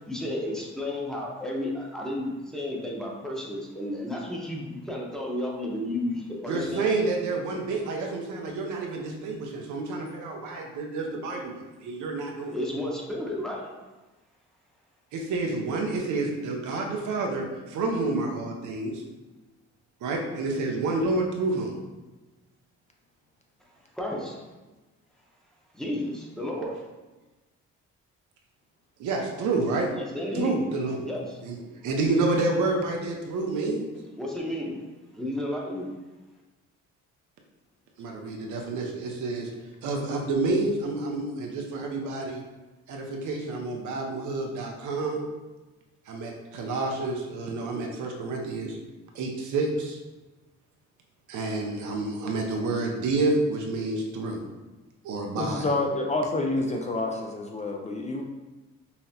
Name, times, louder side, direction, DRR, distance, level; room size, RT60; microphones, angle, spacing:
voice 1, 0.1-6.9 12.5-13.7 23.9-24.4 25.7-26.8 29.9-30.6 31.1-31.4 34.2-34.8 35.1-35.9, left 1 dB, ahead, -3 dB, 0.8 m, -32 dB
voice 2, 6.5-12.6 15.1-19.0 20.0-21.8 29.0-29.9 30.3-31.0 31.4-31.6 31.8-33.9 38.0-39.5 39.8-42.4 42.9-45.2 46.1-48.8 49.1-50.0 51.3-54.4 55.0-55.6, right 3 dB, 75° right, 1 dB, 0.7 m, -29 dB
voice 3, 55.4-58.2, left 2 dB, 25° left, 1 dB, 0.3 m, -28 dB
5.5 x 2.0 x 2.8 m, 1.2 s
cardioid pair, 90°, 30 cm